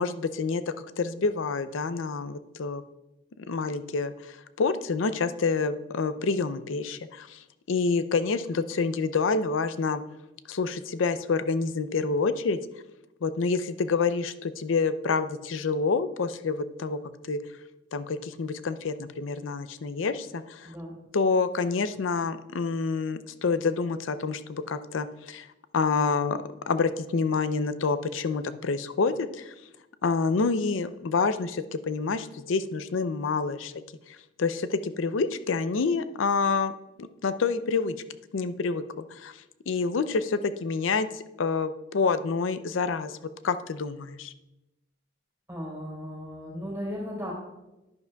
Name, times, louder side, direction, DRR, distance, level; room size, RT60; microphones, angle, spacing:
voice 1, 0.0-2.8 3.4-10.0 10.5-12.6 13.2-17.0 17.3-17.4 17.9-20.7 21.1-25.5 25.7-29.5 30.0-36.7 37.0-38.0 38.3-43.2 43.4-44.3, left 4 dB, 80° left, 12 dB, 0.5 m, -28 dB
voice 2, 20.6-21.0 45.5-47.3, equal, 10° right, -4 dB, 3.7 m, -36 dB
10.5 x 10.5 x 2.3 m, 0.97 s
head